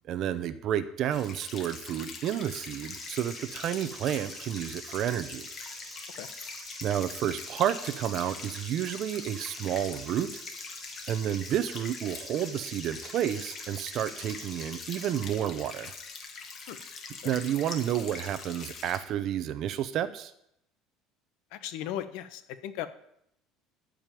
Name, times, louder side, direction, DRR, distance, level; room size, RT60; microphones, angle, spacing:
voice 1, 0.1-5.5 6.8-10.3 11.1-15.9 17.2-20.3, right 10 dB, 40° right, 13 dB, 0.8 m, -30 dB
sound 1, 1.1-19.0, left 5 dB, 30° left, 1.7 m, -43 dB
sound 2, 2.9-15.2, right 1 dB, 5° right, 2.3 m, -47 dB
voice 2, 21.5-22.9, left 11 dB, 65° left, 12 dB, 1.0 m, -36 dB
14.0 x 5.2 x 9.1 m, 0.75 s
cardioid pair, 175°, 0 cm